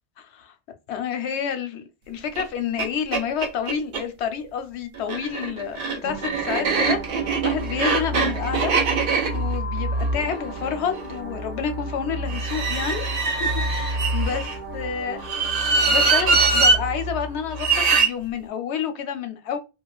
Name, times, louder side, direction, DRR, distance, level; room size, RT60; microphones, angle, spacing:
voice 1, 0.2-0.5 0.9-8.7 9.3-15.2 15.8-19.6, left 7 dB, 90° left, 0.9 m, -29 dB
sound 1, 2.4-2.5 2.8-2.9 3.1-4.0 5.0-11.1 12.3-14.6 15.2-16.8 17.6-18.1, right 4 dB, 60° right, 0.8 m, -23 dB
sound 2, 6.0-18.0, right 1 dB, 15° left, 0.7 m, -31 dB
2.4 x 2.3 x 2.2 m
omnidirectional pair, 1.1 m